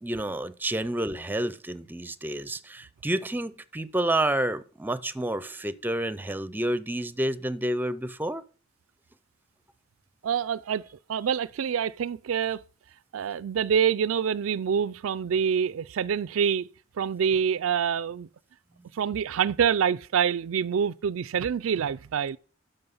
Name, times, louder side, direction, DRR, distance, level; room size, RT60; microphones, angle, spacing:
voice 1, 0.0-8.4 18.7-18.9, right 1 dB, 10° right, 0.5 m, -29 dB
voice 2, 10.2-12.6 13.1-16.7 17.0-18.3 18.9-22.4, right 7 dB, 85° right, 0.4 m, -26 dB
12.5 x 5.5 x 5.4 m
head